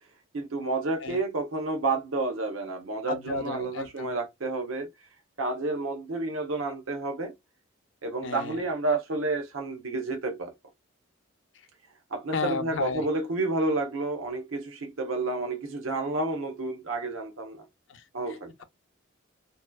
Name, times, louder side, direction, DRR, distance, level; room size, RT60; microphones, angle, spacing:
voice 1, 0.3-4.9 5.4-7.3 8.0-10.5 12.1-17.7 18.1-18.5, right 2 dB, 85° right, 0.8 m, -30 dB
voice 2, 3.1-4.1 8.2-8.6 12.3-13.0 17.9-18.0, left 4 dB, 65° left, 0.5 m, -33 dB
2.9 x 2.2 x 2.2 m
head